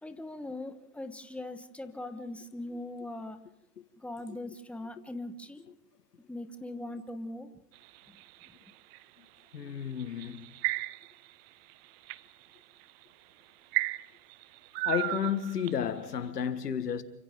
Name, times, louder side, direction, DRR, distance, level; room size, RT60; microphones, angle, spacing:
voice 1, 0.0-3.4 4.0-5.7 6.3-7.5 8.1-8.2, left 1 dB, 5° left, 1.4 m, -40 dB
sound 1, 7.8-9.0 10.0-11.3 11.7-12.2 12.9-13.0 13.7-15.9, right 20 dB, 40° right, 0.7 m, -33 dB
voice 2, 9.5-10.5 14.8-17.0, left 8 dB, 90° left, 1.8 m, -32 dB
29.0 x 25.5 x 3.8 m
hypercardioid pair, 110°, 46 cm